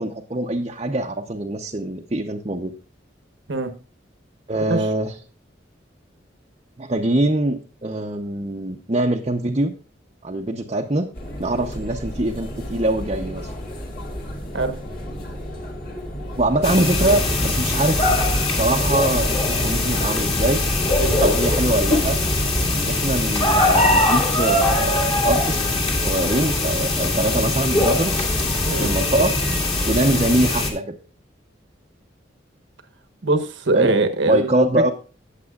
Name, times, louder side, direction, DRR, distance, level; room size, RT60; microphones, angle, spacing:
voice 1, 0.0-2.7 4.5-5.1 6.8-9.7 10.2-11.1 11.4-13.5 16.4-18.1 18.6-20.6 21.2-22.2 22.7-25.8 26.0-28.3 28.8-29.3 29.9-30.9 33.7-33.9 34.3-34.9, right 1 dB, 30° right, 0 dB, 0.8 m, -23 dB
sound 1, 11.1-22.7, equal, 50° left, 2.7 m, -33 dB
sound 2, 16.6-30.7, left 2 dB, 30° left, 2.1 m, -21 dB
voice 2, 33.2-34.9, right 2 dB, 75° right, 7 dB, 1.2 m, -22 dB
18.5 x 7.5 x 2.4 m, 0.36 s
head